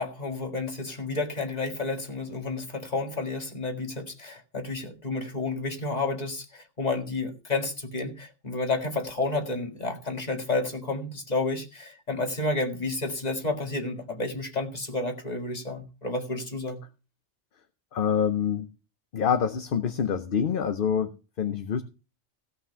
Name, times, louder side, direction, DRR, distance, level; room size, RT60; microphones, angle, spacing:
voice 1, 0.0-16.8, left 3 dB, 35° left, 2.0 m, -31 dB
voice 2, 17.9-18.7 19.1-21.8, left 7 dB, 50° left, 0.9 m, -26 dB
16.0 x 5.9 x 5.6 m
omnidirectional pair, 1.2 m